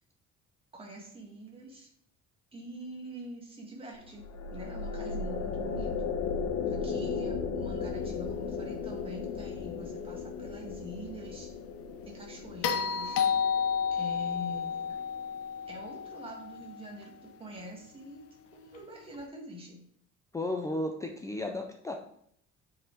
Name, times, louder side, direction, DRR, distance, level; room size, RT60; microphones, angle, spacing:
voice 1, 0.7-1.9 2.5-4.2 4.5-6.0 6.7-11.5 12.1-13.3 13.9-15.0 15.7-18.2 18.5-19.8, equal, 20° right, 0 dB, 1.7 m, -45 dB
sound 1, 4.0-15.4, left 5 dB, 70° left, 1.1 m, -36 dB
sound 2, 12.6-16.9 19.1-19.2, left 7 dB, 50° left, 0.6 m, -31 dB
voice 2, 20.3-21.9, left 1 dB, 10° left, 3 dB, 0.4 m, -34 dB
9.0 x 4.9 x 3.8 m, 0.68 s
cardioid pair, 175°, 30 cm